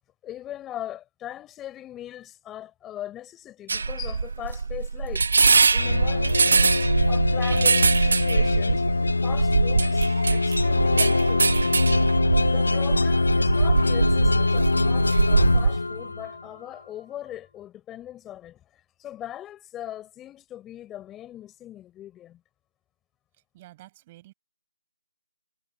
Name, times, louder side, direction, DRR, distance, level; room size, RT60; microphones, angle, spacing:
voice 1, 0.2-5.3 5.7-8.8 9.2-11.5 12.5-22.4, left 12 dB, 10° left, 6.2 m, -40 dB
sound 1, 3.7-15.8, right 4 dB, 55° right, 0.6 m, -23 dB
sound 2, 5.8-16.4, left 3 dB, 75° left, 0.5 m, -23 dB
voice 2, 23.5-24.3, right 17 dB, 20° right, 5.9 m, -49 dB
figure-of-eight pair, 160°, 0 cm